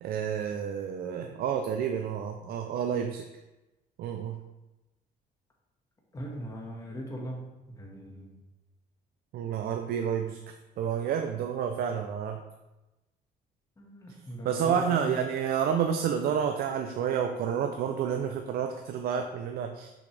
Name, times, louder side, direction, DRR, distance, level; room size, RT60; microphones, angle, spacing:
voice 1, 0.0-3.2 4.0-4.4 9.3-10.4 10.8-12.4 14.4-19.9, right 8 dB, 65° right, 5 dB, 0.5 m, -29 dB
voice 2, 6.1-7.4 7.7-8.3 13.8-15.2, equal, 20° left, -1 dB, 1.6 m, -39 dB
6.1 x 6.0 x 3.3 m, 1.0 s
cardioid pair, 110°, 17 cm